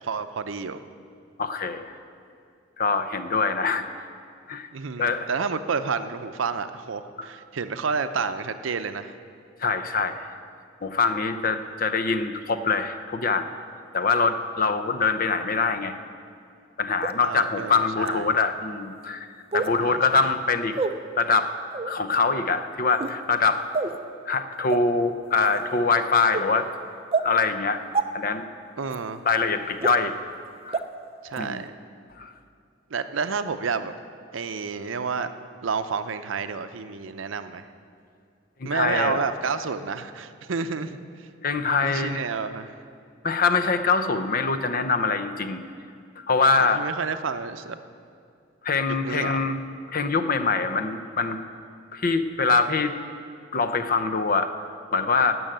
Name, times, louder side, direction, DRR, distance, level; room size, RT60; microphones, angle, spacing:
voice 1, 0.0-0.8 4.7-9.1 17.2-18.3 19.8-20.3 28.8-29.2 31.2-31.7 32.9-33.9 34.3-35.3 35.6-37.7 38.6-41.3 41.8-42.7 46.5-47.8 48.9-49.4, right 5 dB, 80° right, 11 dB, 0.6 m, -30 dB
voice 2, 1.4-1.9 2.8-3.8 4.5-4.7 5.0-5.3 7.2-7.3 9.6-10.2 10.8-13.5 13.9-15.9 16.8-19.3 19.5-20.7 21.2-21.5 21.9-23.6 24.3-26.7 27.2-27.8 28.1-28.4 29.2-30.2 30.6-30.8 31.4-31.6 32.2-32.3 38.6-39.3 41.4-42.2 43.2-45.6 46.2-46.8 48.6-49.6 49.9-51.4 51.9-52.9 53.5-54.5 54.9-55.4, left 4 dB, 45° left, 10 dB, 0.6 m, -24 dB
sound 1, 17.0-17.1 18.0-18.1 19.5-19.7 20.7-20.9 21.7-21.9 22.9-23.2 23.7-24.0 24.7-24.8 25.4-25.6 26.3-26.4 27.1-27.2 27.9-28.0 28.9-29.0 29.8-29.9 30.7-30.8 31.3-31.4, right 4 dB, 30° right, 0.5 m, -26 dB
14.0 x 6.3 x 9.0 m, 2.3 s
head